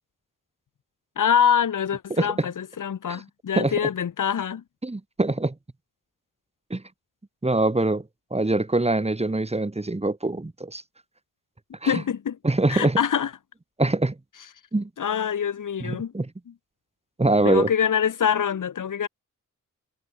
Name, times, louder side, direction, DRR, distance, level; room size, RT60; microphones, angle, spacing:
voice 1, 1.2-4.6 11.9-12.4 12.7-13.3 15.0-16.1 17.4-19.1, left 8 dB, 75° left, 2.6 m, -24 dB
voice 2, 2.2-2.5 3.1-3.2 3.6-3.7 4.8-5.5 6.7-6.8 7.4-8.0 8.3-10.8 11.8-12.0 12.4-13.0 13.8-14.1 14.7-14.9 15.8-16.3 17.2-17.7, right 2 dB, 20° right, 2.8 m, -23 dB
cardioid pair, 80°, 31 cm